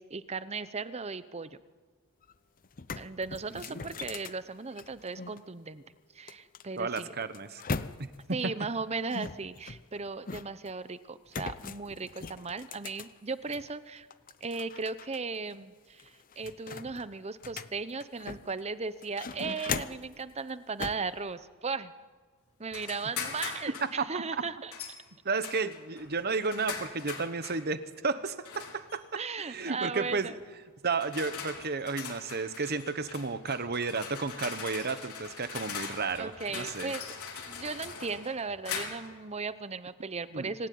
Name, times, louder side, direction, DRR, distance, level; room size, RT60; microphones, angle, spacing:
voice 1, 0.0-1.5 3.0-5.8 6.1-7.2 8.3-14.1 14.4-21.9 22.6-24.7 29.1-30.4 36.2-37.0 37.5-40.7, right 4 dB, 30° right, 14 dB, 0.8 m, -37 dB
sound 1, 2.2-2.3 2.6-5.4 6.3-8.3 9.1-10.7 11.3-13.7 14.1-15.2 15.5-15.6 16.0-18.6 19.0-20.1 20.8-21.1, left 4 dB, 40° left, 0.8 m, -40 dB
voice 2, 3.5-3.9 6.8-7.6 23.8-24.0 24.3-24.4 25.2-30.3 30.8-36.9 40.3-40.5, right 4 dB, 45° right, 12 dB, 1.2 m, -33 dB
sound 2, 22.7-23.9 24.7-25.0 25.4-27.6 28.4-29.0 30.0-30.2 30.8-39.2, left 6 dB, 85° left, 4.0 m, -41 dB
25.5 x 16.5 x 9.5 m, 1.5 s
head